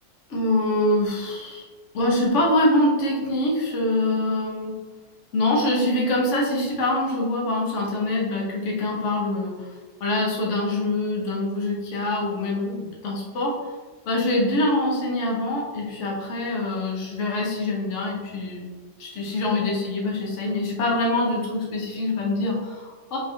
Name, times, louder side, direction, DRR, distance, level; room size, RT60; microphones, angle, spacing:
voice 1, 0.3-1.6 1.9-4.8 5.3-9.7 10.0-13.7 14.0-18.7 19.0-23.2, left 1 dB, 55° left, -2 dB, 1.3 m, -24 dB
4.3 x 3.5 x 3.4 m, 1.4 s
omnidirectional pair, 1.6 m